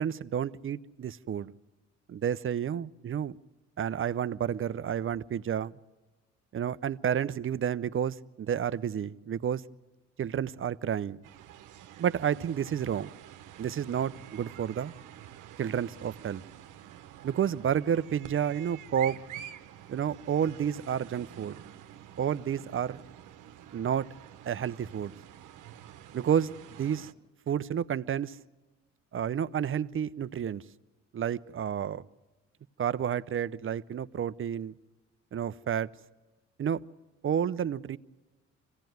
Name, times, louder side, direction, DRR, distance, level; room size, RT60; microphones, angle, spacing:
voice 1, 0.0-1.5 2.1-3.4 3.8-5.7 6.5-9.6 10.2-11.2 12.0-13.1 13.6-14.9 15.6-16.4 17.2-19.2 19.9-21.6 22.2-23.0 23.7-24.1 24.4-25.1 26.1-27.1 27.5-28.4 29.1-30.6 31.1-32.0 32.8-34.7 35.3-35.9 36.6-36.8 37.2-38.0, right 9 dB, 45° right, 0.7 m, -30 dB
sound 1, 11.2-27.1, right 11 dB, 85° right, 1.1 m, -48 dB
25.0 x 17.0 x 9.3 m
cardioid pair, 90°, 30 cm